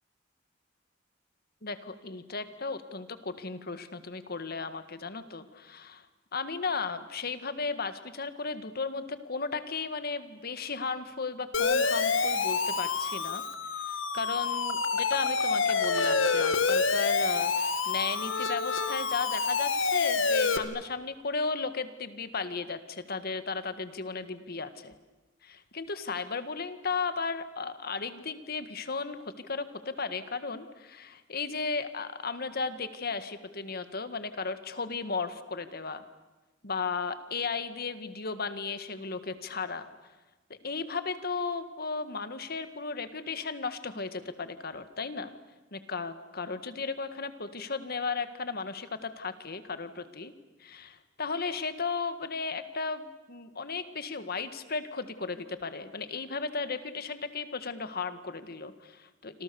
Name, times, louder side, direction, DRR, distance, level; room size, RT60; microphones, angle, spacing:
voice 1, 1.6-6.0 6.3-13.4 13.7-24.9 25.4-36.0 36.6-39.9 40.6-45.3 45.7-50.3 50.6-59.4, left 4 dB, 55° left, 11 dB, 1.8 m, -35 dB
Siren, 11.5-20.6, left 4 dB, 90° left, 1.8 m, -27 dB
28.0 x 26.0 x 7.0 m, 1.2 s
head